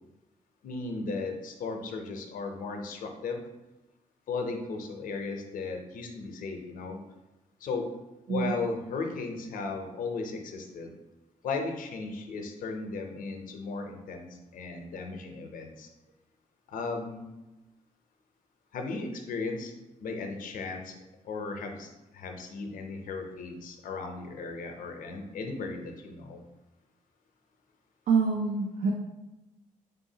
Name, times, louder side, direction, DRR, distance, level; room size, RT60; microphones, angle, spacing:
voice 1, 0.6-3.4 4.3-7.0 7.6-7.9 8.3-10.9 11.4-15.9 16.7-17.3 18.7-19.7 20.0-20.9 21.2-26.4, left 4 dB, 80° left, 4 dB, 0.6 m, -36 dB
voice 2, 28.1-28.9, right 5 dB, 85° right, 1 dB, 0.5 m, -26 dB
4.0 x 3.6 x 2.8 m, 1.0 s
cardioid pair, 110°, 14 cm